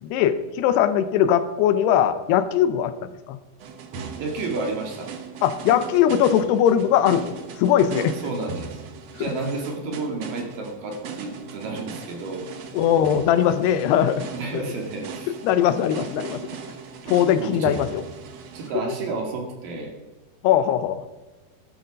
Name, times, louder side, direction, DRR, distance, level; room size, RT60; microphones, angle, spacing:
voice 1, 0.0-3.4 5.4-8.2 9.2-9.3 12.7-14.3 15.4-16.4 17.1-18.0 20.4-21.0, left 10 dB, 80° left, 12 dB, 2.7 m, -20 dB
sound 1, 3.6-18.7, right 6 dB, 75° right, 1.4 m, -38 dB
voice 2, 4.2-5.1 8.2-8.8 9.2-12.5 14.3-15.3 17.4-17.8 18.5-19.9, right 3 dB, 60° right, 2 dB, 3.4 m, -31 dB
13.5 x 11.0 x 5.1 m, 1.2 s
omnidirectional pair, 4.8 m